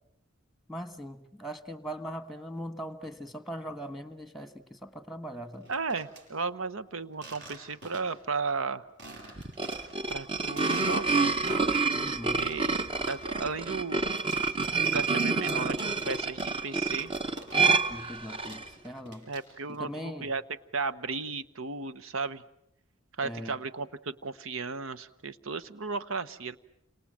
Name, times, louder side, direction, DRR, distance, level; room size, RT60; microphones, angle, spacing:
voice 1, 0.7-5.7 11.9-12.5 17.9-19.2 19.7-20.3 23.2-23.6, equal, ahead, 10 dB, 1.4 m, -40 dB
sound 1, 5.5-6.2 7.1-8.2 8.6-8.7 9.0-10.1 10.5-12.1 12.4-17.9 18.1-19.7, right 2 dB, 55° right, 7.3 m, -47 dB
voice 2, 5.7-8.8 10.1-11.6 12.3-12.8 13.1-14.1 14.9-15.8 16.1-17.1 19.3-20.4 20.7-22.4 23.2-26.6, right 4 dB, 80° right, 15 dB, 1.1 m, -34 dB
sound 2, 9.4-18.7, right 4 dB, 25° right, 1.0 m, -28 dB
29.5 x 26.5 x 7.6 m, 0.76 s
head